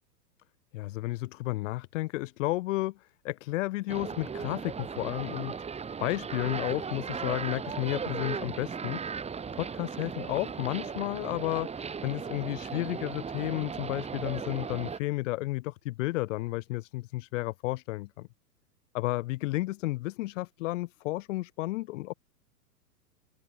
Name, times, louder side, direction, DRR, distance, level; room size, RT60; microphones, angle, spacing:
voice 1, 0.7-9.1 9.5-18.3 18.9-22.1, left 19 dB, 50° left, 3.9 m, -32 dB
sound 1, 3.9-15.0, right 6 dB, 15° right, 5.6 m, -37 dB
hypercardioid pair, 130°, 48 cm